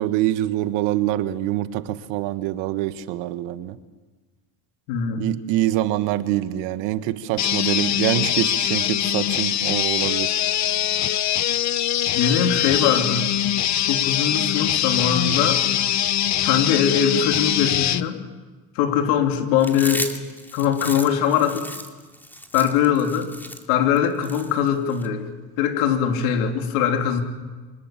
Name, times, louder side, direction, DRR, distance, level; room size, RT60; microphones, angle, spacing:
voice 1, 0.0-3.8 5.2-10.4, right 14 dB, 80° right, 11 dB, 1.6 m, -25 dB
voice 2, 4.9-5.3 12.1-13.3 13.9-15.6 16.4-18.2 18.7-20.1 20.5-21.7 22.5-23.3 23.7-25.3 25.6-27.2, left 8 dB, 85° left, 4 dB, 3.2 m, -21 dB
sound 1, 7.4-18.0, left 11 dB, 40° left, 0.8 m, -22 dB
Chewing mastication, 19.6-25.1, left 1 dB, 5° left, 2.5 m, -35 dB
26.0 x 19.0 x 7.6 m, 1.3 s
supercardioid pair, 90°, 44 cm